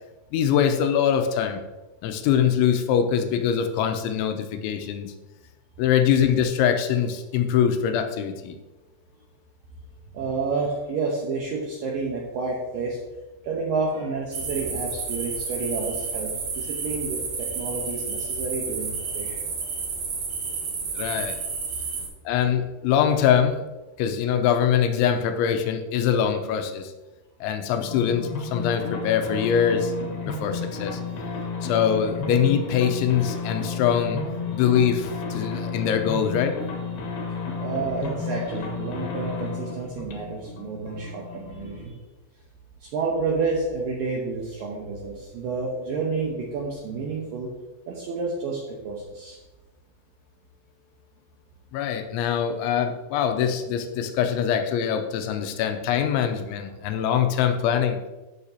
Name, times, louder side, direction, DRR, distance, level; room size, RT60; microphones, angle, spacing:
voice 1, 0.3-1.6 2.0-5.1 5.8-8.6 20.9-21.4 22.3-23.7 24.0-26.9 27.4-29.9 30.3-31.0 31.6-34.2 34.5-36.6 51.7-58.0, left 8 dB, 85° left, 6 dB, 3.0 m, -23 dB
voice 2, 10.1-13.0 13.4-19.4 37.6-42.0 42.8-47.5 47.9-49.4, right 4 dB, 85° right, -2 dB, 1.9 m, -30 dB
sound 1, 14.3-22.1, right 5 dB, 65° right, 2.0 m, -31 dB
sound 2, 27.8-41.9, left 4 dB, 65° left, 2.4 m, -32 dB
13.5 x 5.9 x 2.8 m, 1.1 s
omnidirectional pair, 5.4 m